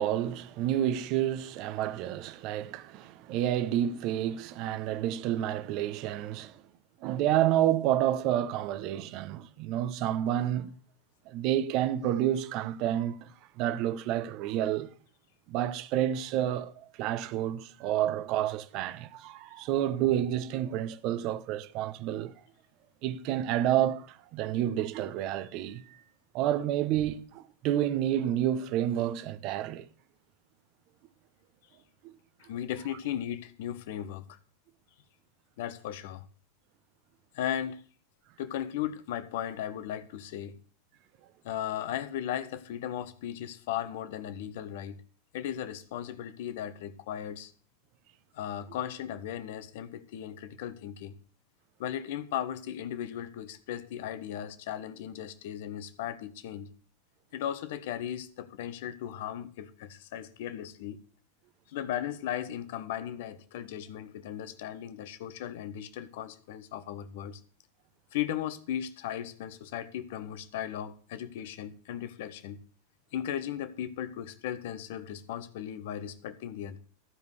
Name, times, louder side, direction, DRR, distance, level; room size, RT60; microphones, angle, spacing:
voice 1, 0.0-6.6 7.0-10.7 11.3-13.3 13.6-14.9 15.5-22.3 23.0-26.0 26.3-29.9 32.0-32.1, right 11 dB, 50° right, 1.0 m, -29 dB
voice 2, 32.4-34.4 35.6-36.2 37.3-37.8 38.4-40.6 41.4-45.0 45.3-47.5 48.3-51.2 51.8-56.7 57.3-61.0 61.7-67.4 68.1-72.6 73.1-76.8, left 10 dB, 65° left, 1.2 m, -36 dB
14.5 x 5.3 x 8.1 m
hypercardioid pair, 95°, 0 cm